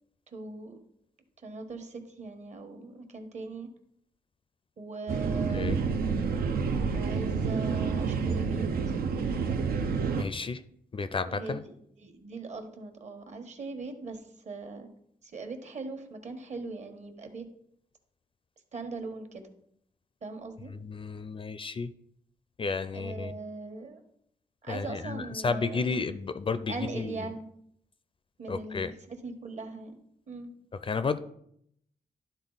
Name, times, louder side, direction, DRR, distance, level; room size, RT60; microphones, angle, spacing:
voice 1, 0.3-0.8 1.4-3.7 4.8-5.8 6.9-9.0 11.2-14.9 15.2-17.5 18.7-19.5 20.2-20.7 22.9-24.0 24.6-26.0 26.7-27.5 28.4-30.0 30.3-30.5, right 3 dB, 50° right, 6 dB, 1.4 m, -40 dB
sound 1, 5.1-10.2, right 5 dB, 80° right, 0.7 m, -29 dB
voice 2, 10.2-10.6 10.9-11.6 20.7-21.9 22.6-23.3 24.7-27.3 28.5-28.9 30.8-31.2, left 4 dB, 35° left, 12 dB, 0.4 m, -32 dB
11.0 x 3.8 x 4.0 m, 0.71 s
cardioid pair, 75°, 15 cm